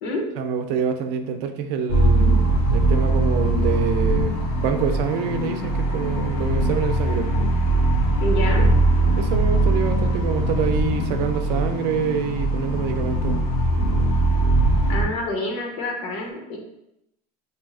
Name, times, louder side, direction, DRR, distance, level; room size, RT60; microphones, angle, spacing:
voice 1, 0.4-7.3 9.1-13.4, right 7 dB, 65° right, 6 dB, 0.5 m, -26 dB
sound 1, 1.9-15.0, right 1 dB, 90° left, 0.8 m, -21 dB
voice 2, 8.2-8.6 14.9-16.6, left 2 dB, 65° left, 1 dB, 1.0 m, -27 dB
4.4 x 2.7 x 2.4 m, 0.82 s
cardioid pair, 135°, 19 cm